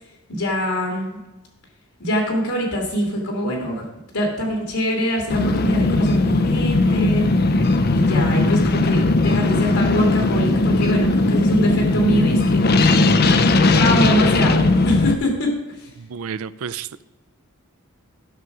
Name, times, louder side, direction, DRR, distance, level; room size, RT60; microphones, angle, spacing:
voice 1, 0.3-1.2 2.0-3.8 4.1-7.3 7.9-12.6 13.2-13.4 13.7-15.9, equal, 85° left, 0 dB, 2.5 m, -23 dB
sound 1, 5.3-15.1, left 2 dB, 45° left, 0.6 m, -18 dB
voice 2, 16.0-17.0, right 6 dB, 80° right, 15 dB, 0.4 m, -31 dB
13.0 x 6.1 x 4.8 m, 1.0 s
head